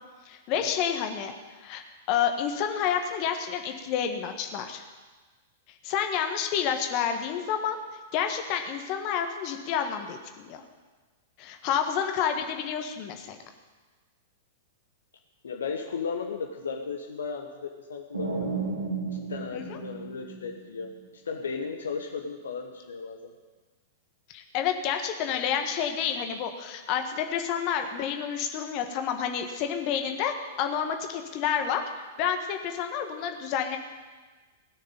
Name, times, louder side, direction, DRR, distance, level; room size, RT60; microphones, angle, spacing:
voice 1, 0.2-1.3 1.6-1.8 2.1-4.8 5.8-7.8 8.1-10.6 11.4-13.4 19.5-19.8 24.3-31.8 32.2-33.8, left 8 dB, 40° left, 5 dB, 1.7 m, -29 dB
voice 2, 15.4-18.5 19.1-20.9 21.2-23.3, left 5 dB, 70° left, 3 dB, 1.2 m, -35 dB
sound 1, 18.1-20.9, right 4 dB, 75° right, 2.2 m, -33 dB
17.5 x 6.6 x 9.4 m, 1.3 s
figure-of-eight pair, 100°, 0 cm